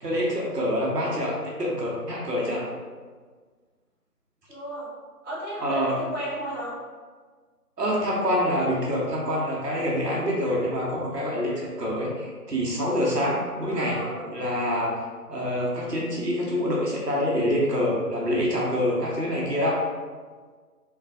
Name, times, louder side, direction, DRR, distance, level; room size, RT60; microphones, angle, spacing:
voice 1, 0.0-2.6 5.6-5.9 7.8-14.0 14.3-15.0 15.3-19.8, equal, 85° right, -4 dB, 1.0 m, -26 dB
voice 2, 4.5-4.9 5.2-6.7 13.6-14.2, right 1 dB, 50° right, -8 dB, 0.9 m, -34 dB
3.1 x 2.3 x 2.5 m, 1.5 s
figure-of-eight pair, 170°, 47 cm